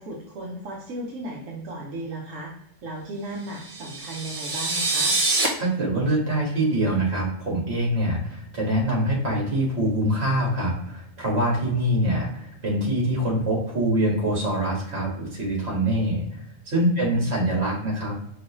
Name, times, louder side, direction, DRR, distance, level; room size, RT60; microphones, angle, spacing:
voice 1, 0.0-2.5 2.8-5.2 17.0-17.3, right 1 dB, 80° right, -3 dB, 1.2 m, -35 dB
sound 1, 3.6-5.5, right 3 dB, 30° right, 0.8 m, -25 dB
voice 2, 5.6-18.2, right 1 dB, 55° right, -3 dB, 1.8 m, -24 dB
4.8 x 3.0 x 3.0 m, 0.73 s
omnidirectional pair, 1.3 m